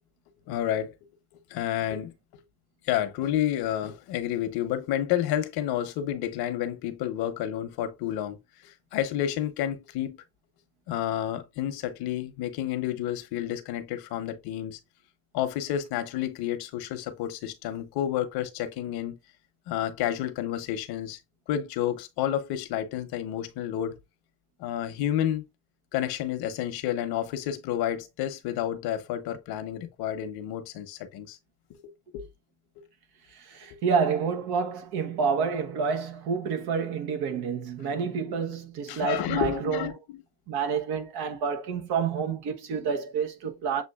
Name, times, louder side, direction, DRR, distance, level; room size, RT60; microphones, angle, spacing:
voice 1, 0.5-0.9 1.5-2.4 2.9-8.4 8.6-10.2 10.9-14.8 15.3-19.2 19.7-21.2 21.5-24.0 24.6-25.5 25.9-31.4 31.7-31.8 32.1-32.2 38.9-40.2, left 11 dB, 85° left, 1.0 m, -30 dB
voice 2, 33.3-39.9 40.5-43.8, right 6 dB, 85° right, 1.2 m, -29 dB
7.3 x 2.6 x 2.4 m
cardioid pair, 115°, 37 cm